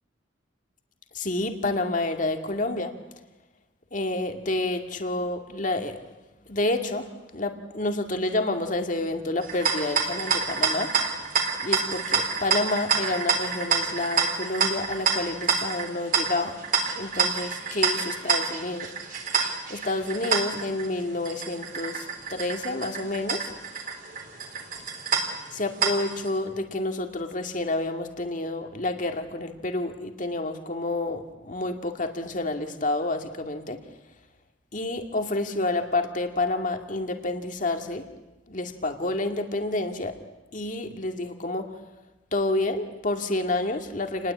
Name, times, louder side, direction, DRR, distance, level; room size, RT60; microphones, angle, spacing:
voice 1, 1.1-2.9 3.9-6.0 6.5-7.1 7.3-10.9 11.6-16.6 17.0-18.9 19.7-22.0 22.3-23.5 25.5-33.8 34.7-38.1 38.5-40.1 40.5-41.7 42.3-44.3, left 2 dB, 40° left, 5 dB, 2.3 m, -29 dB
sound 1, 9.4-26.3, right 5 dB, 45° right, 3.6 m, -28 dB
29.5 x 20.5 x 8.6 m, 1.0 s
head